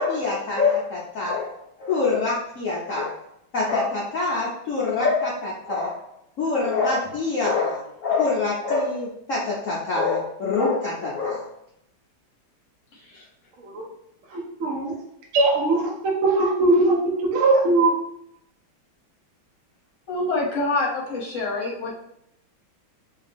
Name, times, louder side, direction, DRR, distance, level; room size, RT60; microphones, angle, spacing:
voice 1, 0.0-3.1 3.5-6.0 6.4-11.5, left 4 dB, 75° left, -6 dB, 0.7 m, -25 dB
voice 2, 12.9-13.2 20.1-21.9, left 2 dB, 45° left, -3 dB, 1.1 m, -26 dB
voice 3, 14.3-14.9 15.3-17.0 17.2-17.9, right 2 dB, 60° right, -2 dB, 0.9 m, -20 dB
3.3 x 2.8 x 3.4 m, 0.78 s
omnidirectional pair, 2.3 m